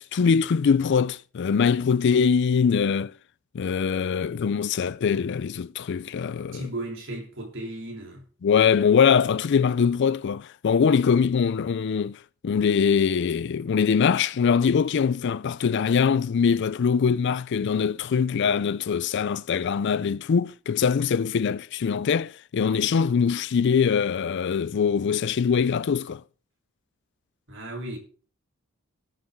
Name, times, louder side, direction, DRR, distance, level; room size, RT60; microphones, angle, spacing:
voice 1, 0.0-3.1 3.5-6.7 8.4-26.2, left 6 dB, 55° left, 0.4 m, -23 dB
voice 2, 6.5-8.2 27.5-28.0, right 1 dB, 60° right, 3.2 m, -35 dB
18.0 x 6.8 x 3.6 m
head